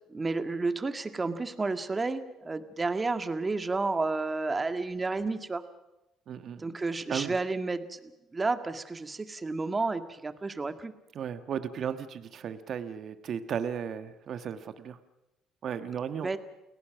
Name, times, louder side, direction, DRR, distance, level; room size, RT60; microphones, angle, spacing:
voice 1, 0.1-5.6 6.6-10.9 16.2-16.4, right 3 dB, 25° right, 9 dB, 1.9 m, -31 dB
voice 2, 6.3-6.6 7.1-7.3 11.1-15.0 15.6-16.4, right 8 dB, 60° right, 10 dB, 1.4 m, -35 dB
29.5 x 17.5 x 6.3 m, 0.95 s
hypercardioid pair, 60°, 0 cm